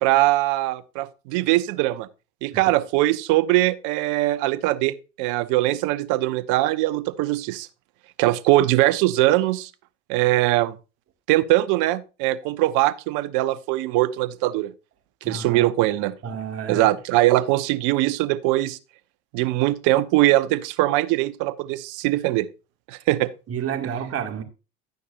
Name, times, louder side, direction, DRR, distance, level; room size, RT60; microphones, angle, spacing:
voice 1, 0.0-2.1 2.4-7.7 8.2-9.7 10.1-10.7 11.3-14.7 15.3-16.1 16.7-18.8 19.3-22.5 22.9-23.3, right 16 dB, 55° right, 0.9 m, -21 dB
voice 2, 15.2-15.7 16.2-17.0 23.5-24.4, right 7 dB, 40° right, 2.1 m, -30 dB
11.5 x 9.3 x 2.5 m
hypercardioid pair, 80°, 37 cm